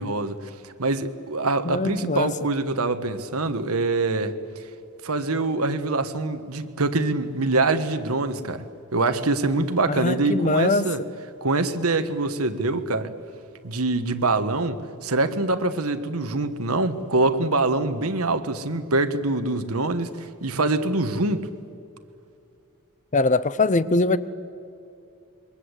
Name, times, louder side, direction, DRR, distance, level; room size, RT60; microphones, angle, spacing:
voice 1, 0.0-4.3 5.0-8.6 8.9-11.0 11.4-13.1 13.6-21.4, right 2 dB, 80° right, 9 dB, 1.5 m, -24 dB
voice 2, 1.6-2.3 9.9-10.9 23.1-24.2, left 3 dB, 35° left, 15 dB, 0.8 m, -22 dB
27.0 x 23.5 x 8.3 m, 2.6 s
head